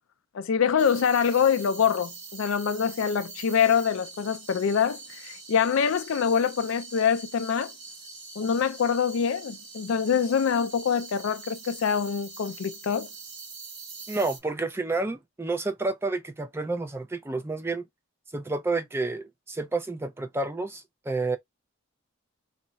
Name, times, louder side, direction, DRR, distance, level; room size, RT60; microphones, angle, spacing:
voice 1, 0.3-7.7 8.4-13.1, left 7 dB, 70° left, 0.4 m, -25 dB
sound 1, 0.8-14.4, right 4 dB, 85° right, 0.9 m, -44 dB
voice 2, 14.1-17.9 18.3-21.4, right 3 dB, 10° right, 0.3 m, -30 dB
2.4 x 2.0 x 3.9 m
head